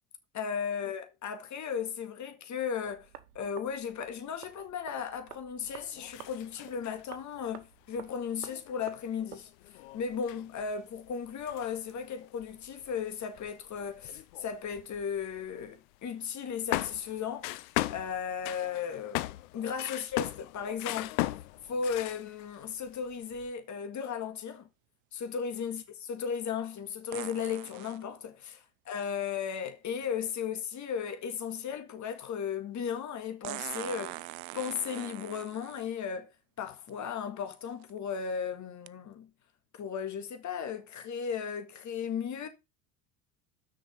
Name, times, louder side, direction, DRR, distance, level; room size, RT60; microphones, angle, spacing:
voice 1, 0.3-3.1 3.4-17.6 17.9-19.3 19.5-21.2 21.6-24.7 25.1-34.3 34.5-36.3 36.6-39.3 39.7-42.5, left 7 dB, 40° left, 1.9 m, -36 dB
sound 1, 2.8-9.4, right 10 dB, 90° right, 1.1 m, -52 dB
sound 2, 5.7-7.0 7.6-7.7 8.0-8.1 8.4-15.7 16.0-16.1 16.7-22.6 22.9-23.5, left 18 dB, 70° left, 0.7 m, -38 dB
sound 3, 20.7-20.8 27.1-28.0 30.0-30.1 33.4-35.9 36.9-37.0 37.6-37.9 38.9-39.0, right 22 dB, 70° right, 0.6 m, -42 dB
6.4 x 5.6 x 6.6 m
hypercardioid pair, 75°, 44 cm